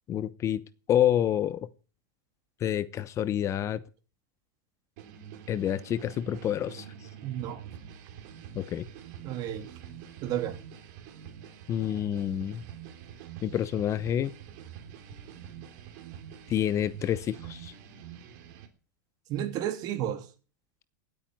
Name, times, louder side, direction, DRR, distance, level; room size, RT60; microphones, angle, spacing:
voice 1, 0.1-0.6 0.9-1.7 2.6-3.8 5.5-6.9 8.5-8.9 11.7-12.6 13.4-14.3 16.5-17.7, left 10 dB, 30° left, 0.9 m, -28 dB
sound 1, 5.0-18.7, right 9 dB, 55° right, 3.3 m, -46 dB
voice 2, 7.2-7.6 9.2-9.7 10.2-10.6 19.3-20.2, right 11 dB, 40° right, 3.0 m, -32 dB
18.0 x 8.9 x 7.8 m
supercardioid pair, 130°, 10 cm